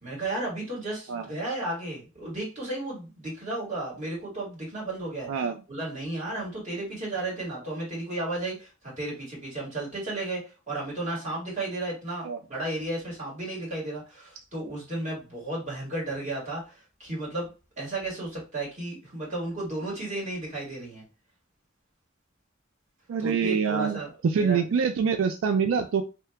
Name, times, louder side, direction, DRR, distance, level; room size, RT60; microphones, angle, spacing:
voice 1, 0.0-5.3 5.7-10.4 10.7-16.7 17.0-17.5 17.8-21.0 23.2-24.6, right 2 dB, 40° right, -5 dB, 1.6 m, -33 dB
voice 2, 23.1-26.0, right 6 dB, 80° right, 7 dB, 0.3 m, -25 dB
2.8 x 2.2 x 3.3 m, 0.32 s
head